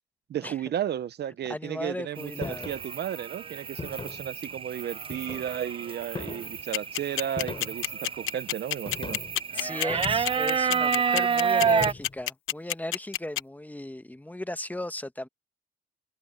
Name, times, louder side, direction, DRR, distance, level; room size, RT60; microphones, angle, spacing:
voice 1, 0.3-9.2, right 10 dB, 60° right, 0.8 m, -34 dB
voice 2, 1.5-2.7 9.5-15.3, left 1 dB, 10° left, 1.4 m, -36 dB
sound 1, 2.2-11.9, right 7 dB, 25° right, 0.4 m, -30 dB
sound 2, 2.4-2.8 3.8-4.3 5.1-5.7 6.2-6.6 7.4-7.9 8.9-9.4 9.9-10.5 11.6-12.2, left 4 dB, 25° left, 4.5 m, -39 dB
sound 3, 6.7-13.4, left 14 dB, 90° left, 1.0 m, -27 dB
cardioid pair, 90°, 20 cm